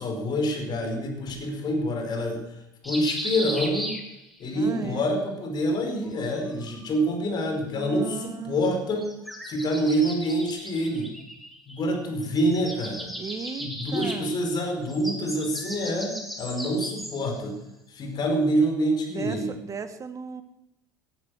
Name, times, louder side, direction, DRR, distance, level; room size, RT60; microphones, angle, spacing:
voice 1, 0.0-2.4 2.8-3.9 4.4-9.0 9.5-11.1 11.7-13.1 13.6-16.1 16.4-17.6 17.9-19.6, equal, 40° left, 4 dB, 5.1 m, -26 dB
sound 1, 2.8-4.6 6.0-7.0 9.0-12.0 12.2-17.4, equal, ahead, 3.5 m, -37 dB
voice 2, 4.5-5.1 7.7-8.8 13.2-14.4 19.1-20.4, right 5 dB, 30° right, 10 dB, 1.8 m, -36 dB
18.5 x 11.0 x 6.5 m, 0.85 s
figure-of-eight pair, 65°, 11 cm